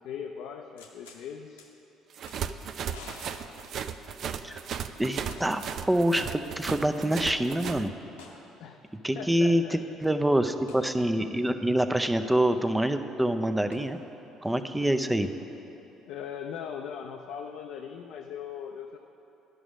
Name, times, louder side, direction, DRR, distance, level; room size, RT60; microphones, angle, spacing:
voice 1, 0.0-1.7 8.6-8.8 9.1-9.8 14.8-15.3 15.7-15.8 16.1-19.0, left 7 dB, 70° left, 2 dB, 0.5 m, -40 dB
sound 1, 0.8-1.2 1.6-1.7 2.2-2.4 2.9-4.4 5.3-5.7 6.1-6.2 8.2-8.5 10.7-10.9 13.7-13.8, left 4 dB, 90° left, 0.9 m, -49 dB
sound 2, 2.1-7.8, right 8 dB, 55° right, 0.4 m, -36 dB
voice 2, 5.0-5.6 5.9-7.9 9.0-14.0 14.4-15.3, right 1 dB, 10° right, 8 dB, 0.5 m, -26 dB
11.0 x 5.1 x 6.2 m, 3.0 s
hypercardioid pair, 60°, 0 cm